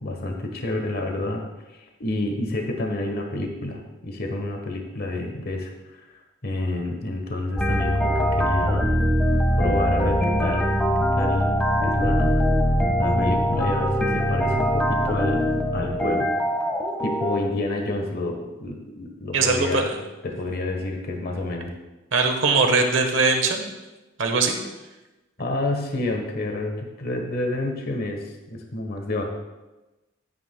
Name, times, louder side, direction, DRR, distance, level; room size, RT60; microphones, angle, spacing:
voice 1, 0.0-1.4 1.7-5.7 6.4-8.9 9.6-10.7 11.0-12.4 13.0-15.4 15.7-16.3 17.0-19.9 20.2-21.7 25.4-29.3, left 2 dB, 50° left, 2 dB, 1.1 m, -29 dB
sound 1, 7.6-17.4, equal, 5° left, 1.0 m, -22 dB
voice 2, 19.3-19.8 22.1-23.7 24.2-24.6, right 4 dB, 70° right, 4 dB, 1.1 m, -21 dB
12.5 x 9.4 x 2.2 m, 1.1 s
head